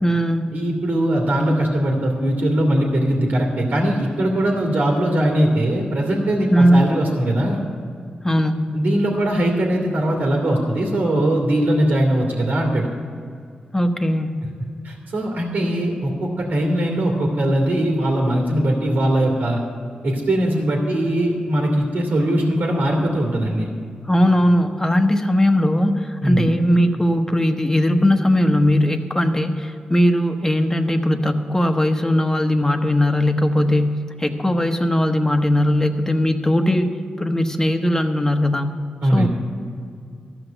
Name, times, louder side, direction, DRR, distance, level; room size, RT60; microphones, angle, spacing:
voice 1, 0.0-0.6 6.5-6.9 8.2-8.7 13.7-14.4 24.1-36.9 37.2-38.7 39.1-39.3, equal, 15° left, 5 dB, 1.2 m, -19 dB
voice 2, 0.5-7.6 8.7-12.9 14.8-19.6 20.0-23.7 26.2-26.5 39.0-39.3, right 1 dB, 75° right, -1 dB, 2.2 m, -20 dB
13.5 x 6.0 x 9.0 m, 2.3 s
cardioid pair, 50°, 3 cm